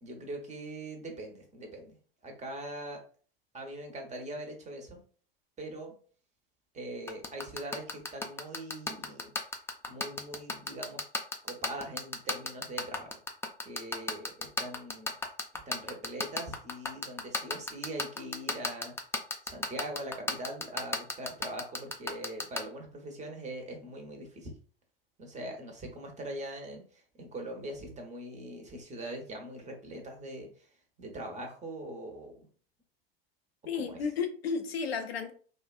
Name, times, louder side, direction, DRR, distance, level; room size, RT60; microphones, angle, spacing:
voice 1, 0.0-2.0 2.2-3.0 3.5-5.0 5.6-5.9 6.7-9.3 9.9-11.0 11.4-13.2 13.6-15.1 15.7-18.9 19.4-24.5 25.2-30.7 31.0-32.3 33.8-34.0, right 1 dB, 25° right, 0.9 m, -42 dB
sound 1, 7.1-22.6, left 3 dB, 10° left, 0.4 m, -31 dB
voice 2, 33.7-35.3, left 5 dB, 90° left, 0.5 m, -33 dB
2.6 x 2.2 x 2.4 m
hypercardioid pair, 80°, 30 cm